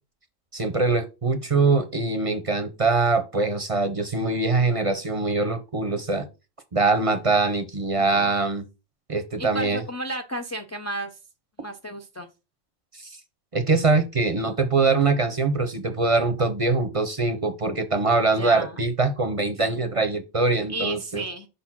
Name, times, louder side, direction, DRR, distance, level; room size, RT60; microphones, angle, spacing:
voice 1, 0.5-6.3 6.7-8.6 9.1-9.8 12.9-13.2 13.5-21.2, right 3 dB, 35° right, 0.6 m, -23 dB
voice 2, 8.0-8.4 9.4-11.2 11.6-12.3 18.4-18.8 20.7-21.5, right 1 dB, 25° left, 0.3 m, -33 dB
5.0 x 4.3 x 5.8 m
omnidirectional pair, 1.2 m